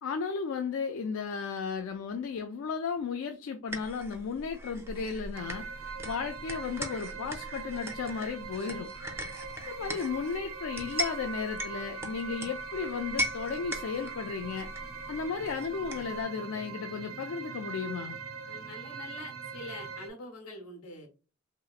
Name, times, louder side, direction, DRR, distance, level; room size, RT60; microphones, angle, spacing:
voice 1, 0.0-5.6 6.0-8.9 9.7-14.7 15.1-18.2, left 5 dB, 65° left, 0.3 m, -34 dB
sound 1, 3.7-16.2, right 1 dB, 10° right, 0.4 m, -40 dB
sound 2, 5.3-20.1, right 6 dB, 75° right, 0.5 m, -42 dB
sound 3, 8.8-15.3, left 2 dB, 25° left, 0.8 m, -50 dB
voice 2, 18.5-21.1, left 2 dB, 85° left, 1.0 m, -45 dB
2.9 x 2.8 x 2.4 m
head